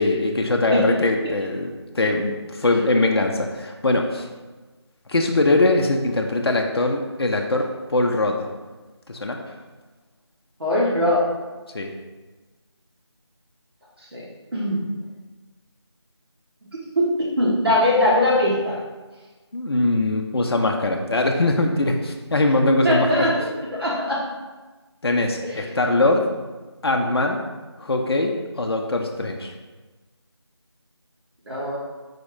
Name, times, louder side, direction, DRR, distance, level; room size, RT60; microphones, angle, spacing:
voice 1, 0.0-4.3 5.1-8.5 9.1-9.4 11.7-11.9 19.5-23.3 25.0-26.3 26.8-27.4 27.8-29.5, left 2 dB, 60° left, 2 dB, 0.5 m, -21 dB
voice 2, 10.6-11.2 14.1-14.2 14.5-14.8 17.0-17.1 17.4-18.8 22.8-23.3 23.8-24.2 31.5-31.8, left 1 dB, 60° right, -7 dB, 1.1 m, -20 dB
4.2 x 2.5 x 4.8 m, 1.2 s
figure-of-eight pair, 170°, 15 cm